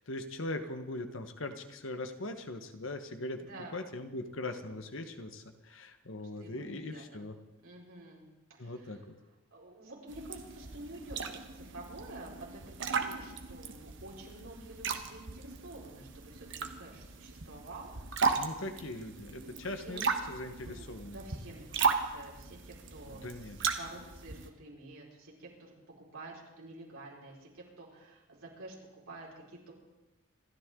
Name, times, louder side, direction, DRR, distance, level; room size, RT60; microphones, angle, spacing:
voice 1, 0.0-3.4 3.7-7.3 8.6-9.1 18.3-21.2 23.1-23.6, left 2 dB, 65° left, 7 dB, 1.3 m, -40 dB
voice 2, 3.4-3.8 6.2-7.3 7.6-9.0 9.5-18.4 19.5-20.0 20.6-29.7, right 2 dB, 80° right, -3 dB, 5.0 m, -49 dB
sound 1, 10.1-24.5, right 5 dB, 60° right, 1.3 m, -36 dB
27.0 x 13.0 x 3.9 m, 1.1 s
head